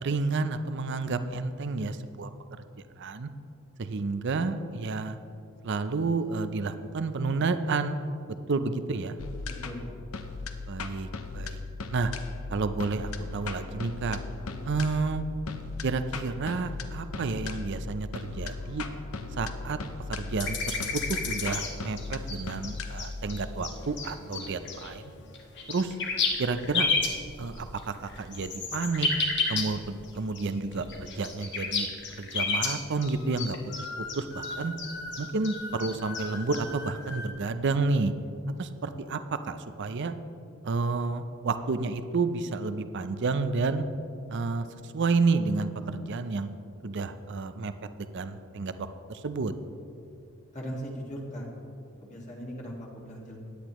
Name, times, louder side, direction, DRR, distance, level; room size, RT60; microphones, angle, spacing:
voice 1, 0.0-2.3 3.0-3.3 3.8-5.2 5.6-8.0 8.5-9.1 10.7-11.6 11.9-12.1 12.5-14.2 14.7-15.2 15.8-18.8 19.4-19.8 20.1-25.0 25.7-25.9 26.4-26.9 27.4-29.1 29.5-31.9 32.2-33.6 34.0-34.7 35.2-38.1 38.6-40.2 40.6-43.8 44.3-46.5 46.8-47.7 48.0-49.5, right 3 dB, 55° right, 11 dB, 0.5 m, -30 dB
sound 1, 9.2-26.3, left 3 dB, 75° left, 0.8 m, -38 dB
voice 2, 9.5-10.0 50.5-51.5 52.0-53.4, equal, 35° left, -3 dB, 1.9 m, -39 dB
sound 2, 20.4-21.7 22.0-24.9 25.3-30.1 30.4-30.5 30.7-37.3, left 4 dB, 55° left, 1.5 m, -32 dB
16.5 x 10.5 x 3.1 m, 2.5 s
head